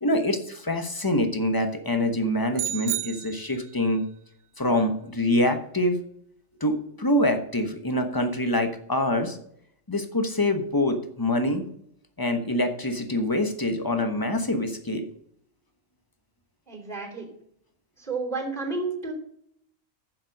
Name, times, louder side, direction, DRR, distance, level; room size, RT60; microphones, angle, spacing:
voice 1, 0.0-4.0 4.6-6.0 6.6-9.4 9.9-11.6 12.2-15.1, left 1 dB, 20° left, 6 dB, 1.0 m, -25 dB
sound 1, 2.5-3.9, right 12 dB, 75° right, 0.9 m, -32 dB
voice 2, 16.7-17.3 18.0-19.1, right 3 dB, 40° right, -1 dB, 3.5 m, -31 dB
7.6 x 7.4 x 6.4 m, 0.68 s
omnidirectional pair, 1.3 m